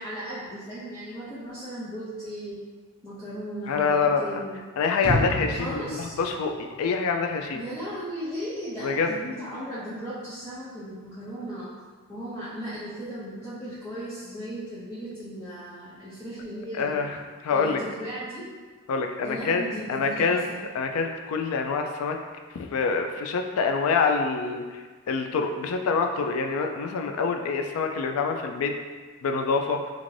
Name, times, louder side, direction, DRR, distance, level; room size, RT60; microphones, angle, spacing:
voice 1, 0.0-2.6 3.0-4.6 5.5-6.2 7.5-11.7 12.1-17.0 17.5-18.5 19.2-20.6, equal, 15° left, -12 dB, 0.5 m, -36 dB
voice 2, 3.7-4.3 4.8-7.6 8.8-9.2 16.7-17.8 18.9-19.6 19.9-20.4 20.7-22.2 22.7-24.6 25.1-28.7 29.2-29.8, left 5 dB, 70° left, 4 dB, 0.3 m, -26 dB
sound 1, 5.0-7.2 7.5-7.6, equal, 50° right, 0.5 m, -30 dB
2.5 x 2.5 x 3.1 m, 1.5 s
head